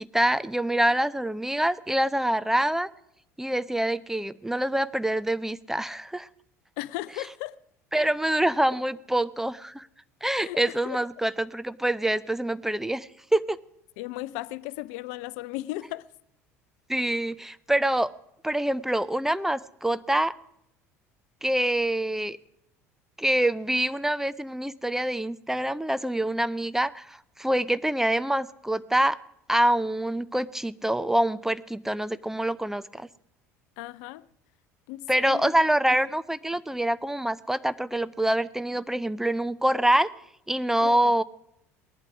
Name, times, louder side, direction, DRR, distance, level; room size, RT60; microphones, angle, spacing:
voice 1, 0.0-2.9 3.4-6.3 7.9-9.9 10.2-13.6 16.9-18.1 18.4-20.3 21.4-22.4 23.2-29.2 29.5-33.1 35.1-40.1 40.5-41.2, right 1 dB, 5° right, 0.5 m, -25 dB
voice 2, 6.8-7.5 7.9-8.1 10.4-10.6 10.8-11.0 14.0-16.1 33.8-34.2 34.9-35.5 35.9-36.0 40.8-41.1, left 17 dB, 60° left, 0.5 m, -36 dB
18.5 x 11.5 x 4.9 m
figure-of-eight pair, 65°, 8 cm